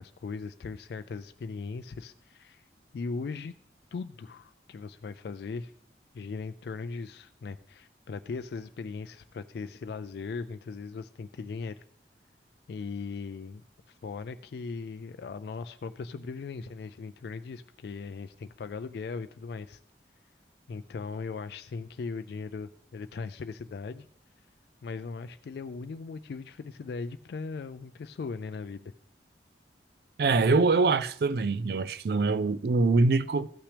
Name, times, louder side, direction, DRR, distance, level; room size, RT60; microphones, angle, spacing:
voice 1, 0.0-2.6 2.9-3.5 3.9-5.7 6.1-11.8 12.7-13.6 13.9-19.8 20.7-24.1 24.8-28.9, left 4 dB, 60° left, 0.3 m, -38 dB
voice 2, 30.2-33.5, right 3 dB, 55° right, 0.4 m, -24 dB
14.5 x 5.9 x 3.3 m
head